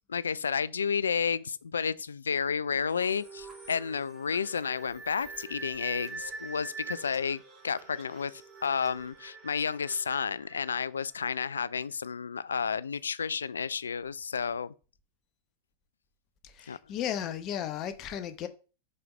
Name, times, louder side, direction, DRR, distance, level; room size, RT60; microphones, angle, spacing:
voice 1, 0.1-8.3 8.6-14.7 16.7-16.8, left 6 dB, 70° left, 0.3 m, -31 dB
sound 1, 2.9-11.5, right 4 dB, 25° right, 3.6 m, -45 dB
voice 2, 16.6-18.5, left 10 dB, 35° left, 0.9 m, -34 dB
5.5 x 5.4 x 3.3 m
figure-of-eight pair, 90°, 0 cm